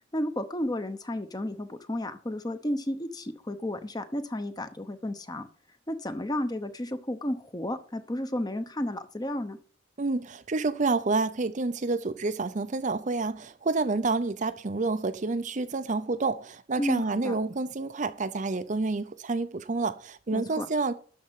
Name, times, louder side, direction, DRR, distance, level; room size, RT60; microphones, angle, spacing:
voice 1, 0.1-5.5 5.9-9.6 16.8-17.3 20.3-20.7, left 1 dB, 20° left, 0.8 m, -32 dB
voice 2, 10.0-20.9, right 3 dB, 35° right, 0.5 m, -29 dB
12.5 x 4.3 x 7.4 m
head